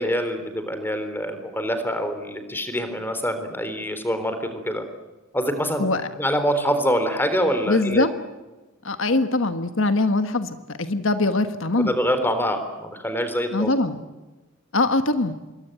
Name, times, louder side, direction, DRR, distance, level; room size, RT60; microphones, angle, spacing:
voice 1, 0.0-4.8 5.3-5.8 6.2-8.1 11.8-13.7, equal, 10° left, 9 dB, 3.6 m, -25 dB
voice 2, 7.7-8.1 8.8-11.9 13.5-14.0 14.7-15.4, left 2 dB, 65° left, 9 dB, 1.4 m, -22 dB
27.0 x 23.0 x 9.1 m, 1.2 s
head